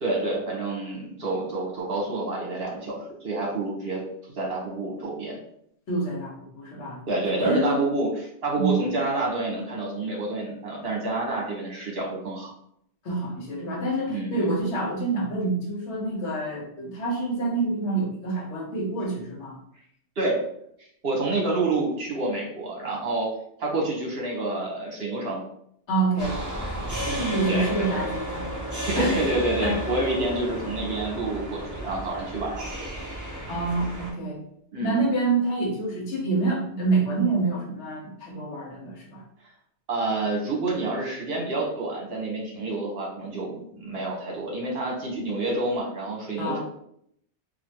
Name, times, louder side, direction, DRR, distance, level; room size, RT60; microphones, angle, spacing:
voice 1, 0.0-4.0 4.3-5.4 7.1-12.5 14.1-14.5 20.2-20.4 21.0-23.3 23.6-25.4 27.1-27.9 28.9-32.9 34.7-35.0 39.9-46.6, right 2 dB, 55° right, -2 dB, 1.2 m, -28 dB
voice 2, 5.9-7.0 7.4-7.8 8.6-8.8 13.0-19.6 25.9-26.4 27.3-28.4 29.0-29.2 29.6-29.8 33.5-34.4 34.8-39.2 46.4-46.6, right 3 dB, 70° left, -2 dB, 1.2 m, -27 dB
sound 1, 26.2-34.1, equal, 20° right, 0.5 m, -33 dB
3.1 x 2.6 x 2.8 m, 0.71 s
omnidirectional pair, 1.2 m